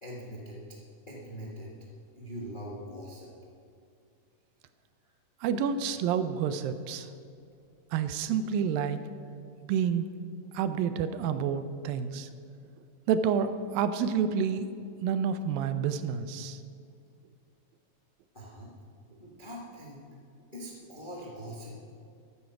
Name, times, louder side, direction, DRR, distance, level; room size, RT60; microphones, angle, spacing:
voice 1, 0.0-0.6 1.1-1.7 2.1-3.3 18.3-18.7 19.2-20.0 20.5-21.8, equal, 40° left, -4 dB, 0.6 m, -42 dB
voice 2, 5.4-7.1 7.9-9.0 9.7-10.1 10.5-12.3 13.1-14.7 15.0-16.6, right 7 dB, 80° right, 11 dB, 2.3 m, -29 dB
14.0 x 11.5 x 5.9 m, 2.4 s
omnidirectional pair, 4.2 m